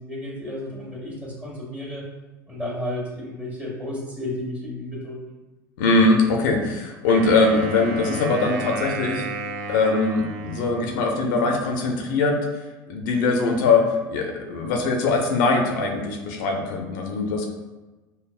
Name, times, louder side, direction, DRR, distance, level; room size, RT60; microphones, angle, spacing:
voice 1, 0.0-2.1 2.5-5.3, left 1 dB, 10° right, -3 dB, 1.5 m, -32 dB
voice 2, 5.8-9.2 9.7-12.4 12.9-17.5, left 3 dB, 70° left, 2 dB, 0.6 m, -21 dB
Wind instrument woodwind instrument, 7.1-11.4, right 3 dB, 65° right, 0.6 m, -33 dB
5.5 x 2.2 x 2.4 m, 1.2 s
hypercardioid pair, 80°, 11 cm